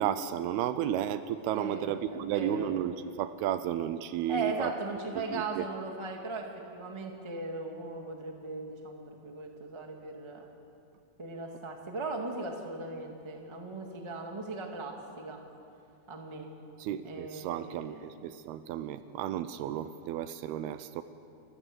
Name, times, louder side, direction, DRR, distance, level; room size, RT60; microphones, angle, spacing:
voice 1, 0.0-4.7 5.2-5.6 16.8-21.0, right 11 dB, 80° right, 12 dB, 2.5 m, -33 dB
voice 2, 1.5-2.8 4.3-6.5 6.7-10.5 11.2-15.4 16.1-16.5 17.0-18.1 19.6-19.9, right 2 dB, 20° right, 1 dB, 0.6 m, -38 dB
30.0 x 14.5 x 8.0 m, 2.5 s
omnidirectional pair, 4.8 m